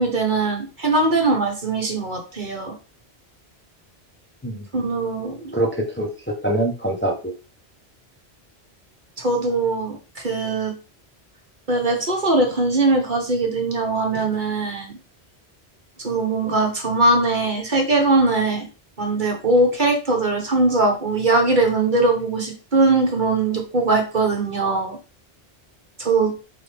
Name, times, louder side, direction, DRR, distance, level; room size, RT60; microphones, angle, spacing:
voice 1, 0.0-2.7 4.7-5.6 9.2-10.7 11.7-14.9 16.0-18.7 19.0-25.0 26.0-26.3, right 2 dB, 50° right, 1 dB, 1.6 m, -21 dB
voice 2, 5.5-7.3, right 1 dB, 10° left, 0 dB, 1.0 m, -24 dB
8.1 x 3.4 x 3.5 m, 0.33 s
omnidirectional pair, 1.1 m